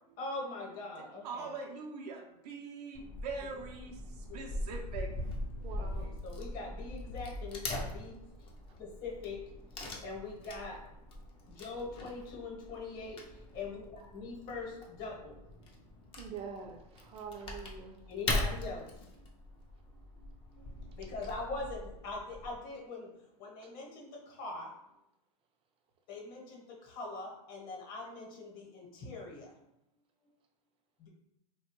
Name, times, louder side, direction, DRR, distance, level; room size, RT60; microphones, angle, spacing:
voice 1, 0.2-1.5 5.8-8.1 8.8-9.4 10.0-10.8 11.6-13.2 13.5-15.3 18.1-18.8 21.0-23.1 23.4-24.1 24.4-24.7 26.1-26.6 26.9-29.5, left 3 dB, 45° left, -1 dB, 1.0 m, -42 dB
voice 2, 1.2-4.0 4.3-5.1, right 4 dB, 75° right, 1 dB, 0.6 m, -42 dB
Wood / Tearing, 3.0-22.6, left 1 dB, 25° left, 0.5 m, -41 dB
voice 3, 5.6-6.1 16.2-18.0, right 6 dB, 30° right, 3 dB, 0.4 m, -45 dB
2.7 x 2.2 x 3.0 m, 0.84 s
hypercardioid pair, 115°, 21 cm